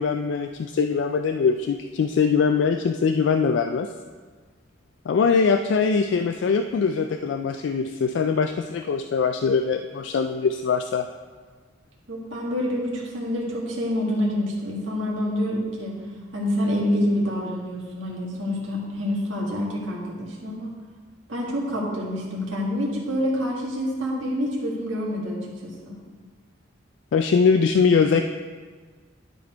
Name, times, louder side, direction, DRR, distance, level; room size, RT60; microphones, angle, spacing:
voice 1, 0.0-3.9 5.1-11.1 27.1-28.2, left 5 dB, 65° left, 7 dB, 0.3 m, -22 dB
voice 2, 12.1-16.0 16.3-20.7 21.3-25.9, equal, 85° right, -3 dB, 1.8 m, -27 dB
11.5 x 4.1 x 4.5 m, 1.5 s
head